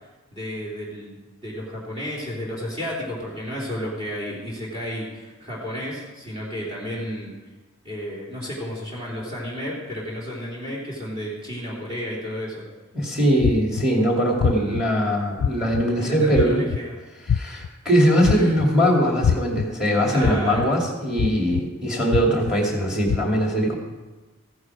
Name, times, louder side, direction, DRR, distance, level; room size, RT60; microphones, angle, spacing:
voice 1, 0.3-1.2 1.4-7.3 7.8-12.6 16.0-16.9 18.3-18.6 20.1-20.7, equal, 25° right, -5 dB, 3.4 m, -32 dB
voice 2, 12.9-16.6 17.3-23.8, equal, 5° right, 0 dB, 2.4 m, -21 dB
sound 1, 13.4-13.8 14.4-14.8 15.4-15.8 16.3-16.8 17.3-17.7 18.2-18.7 19.2-19.6 20.2-20.7 21.2-21.6 22.1-22.5 23.1-23.2, left 7 dB, 75° left, 0.3 m, -22 dB
14.5 x 11.0 x 4.8 m, 1.2 s
head